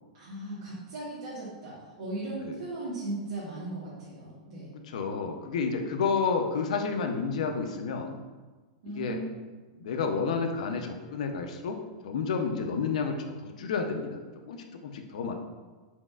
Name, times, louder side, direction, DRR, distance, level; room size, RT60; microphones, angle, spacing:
voice 1, 0.1-4.7 8.8-9.3, right 2 dB, 65° right, -8 dB, 1.2 m, -37 dB
voice 2, 4.8-8.2 8.9-9.2 9.8-11.8 12.0-13.2 13.4-14.2 14.5-15.3, left 5 dB, 75° left, 5 dB, 0.5 m, -30 dB
4.3 x 4.0 x 2.3 m, 1.3 s
supercardioid pair, 160°, 4 cm